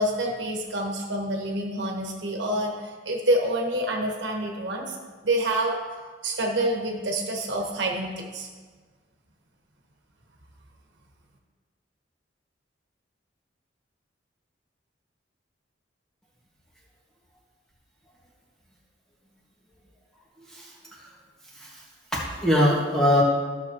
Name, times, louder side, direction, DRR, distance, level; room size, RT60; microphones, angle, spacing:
voice 1, 0.0-5.0 5.2-5.7 6.2-8.5, right 1 dB, 70° right, 0 dB, 1.4 m, -27 dB
voice 2, 20.4-21.1 21.5-21.8 22.1-23.2, left 1 dB, 5° left, -6 dB, 1.8 m, -23 dB
14.0 x 6.4 x 3.0 m, 1.5 s
head